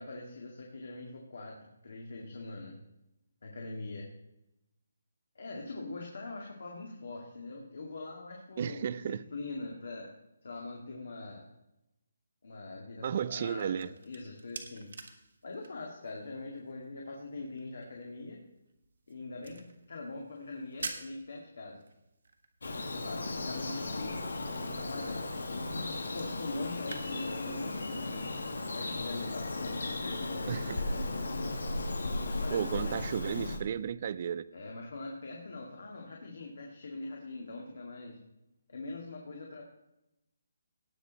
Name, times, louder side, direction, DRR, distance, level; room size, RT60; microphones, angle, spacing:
voice 1, 0.0-2.7 3.4-4.1 5.4-9.0 9.3-10.1 10.4-11.5 12.4-14.9 15.4-18.4 19.1-21.8 22.7-25.7 26.1-28.2 28.7-31.6 32.2-33.0 34.5-38.2 38.7-39.6, left 2 dB, 60° left, 0 dB, 2.1 m, -42 dB
voice 2, 8.6-9.2 13.0-13.9 30.5-30.8 32.5-34.5, right 8 dB, 30° right, 18 dB, 0.3 m, -33 dB
sound 1, 13.3-27.0, right 4 dB, 60° right, 1.5 m, -50 dB
Bird vocalization bird call bird song, 22.6-33.6, left 2 dB, 80° left, 2.0 m, -36 dB
18.5 x 6.3 x 4.1 m, 0.89 s
hypercardioid pair, 175°, 0 cm